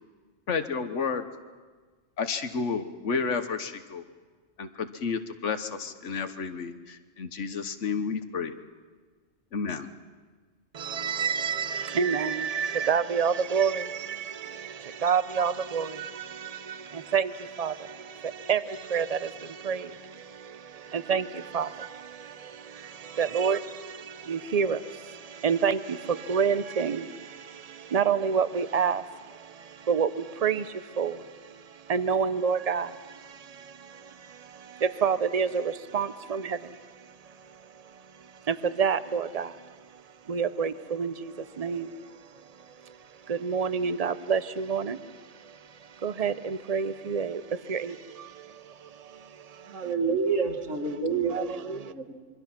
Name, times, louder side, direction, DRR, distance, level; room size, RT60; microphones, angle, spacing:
voice 1, 0.5-1.3 2.2-4.0 4.6-8.5 9.5-9.9, left 5 dB, 75° left, 9 dB, 1.5 m, -31 dB
voice 2, 10.7-49.9 50.8-51.0 51.3-51.9, right 6 dB, 35° right, 13 dB, 0.7 m, -30 dB
voice 3, 49.7-51.4 51.6-52.1, right 5 dB, 90° right, 3 dB, 2.4 m, -28 dB
26.5 x 23.5 x 5.9 m, 1.4 s
omnidirectional pair, 1.3 m